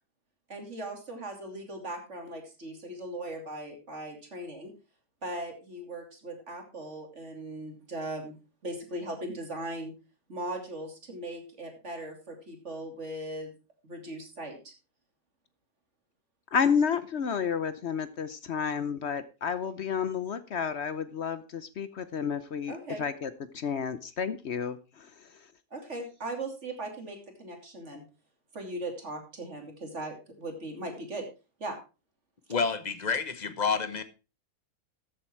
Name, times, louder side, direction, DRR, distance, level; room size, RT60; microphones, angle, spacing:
voice 1, 0.5-4.7 5.2-8.4 8.6-9.9 10.3-13.5 13.8-14.7 22.7-23.0 25.7-28.0 28.5-31.3 31.6-31.8, right 1 dB, 45° right, 3.1 m, -39 dB
voice 2, 16.5-25.4, left 6 dB, 55° left, 0.9 m, -31 dB
voice 3, 32.5-34.0, left 5 dB, 30° left, 1.0 m, -29 dB
13.5 x 7.8 x 4.5 m
omnidirectional pair, 1.7 m